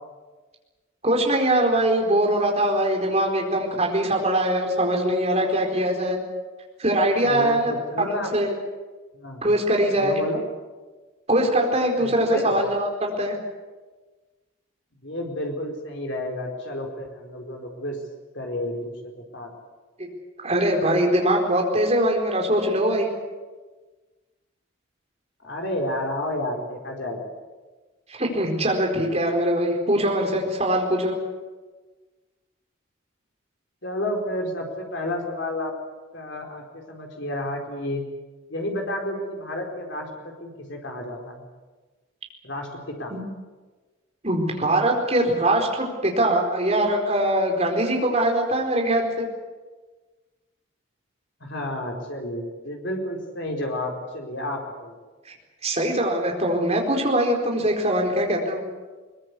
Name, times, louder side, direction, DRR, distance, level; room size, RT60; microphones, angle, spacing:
voice 1, 1.0-6.2 6.8-7.7 8.0-8.5 9.4-10.1 11.3-13.4 20.0-20.1 20.4-23.1 28.1-31.1 43.1-43.2 44.2-49.3 55.3-55.4 55.6-58.6, right 1 dB, 30° right, 1 dB, 4.4 m, -22 dB
voice 2, 7.2-8.3 9.1-9.4 10.0-10.4 12.0-12.6 15.0-18.0 18.3-19.5 25.4-27.3 33.8-35.7 36.1-38.0 38.5-41.4 42.4-43.1 51.4-54.9, left 1 dB, 60° left, 2 dB, 4.6 m, -31 dB
22.0 x 21.0 x 8.4 m, 1.3 s
head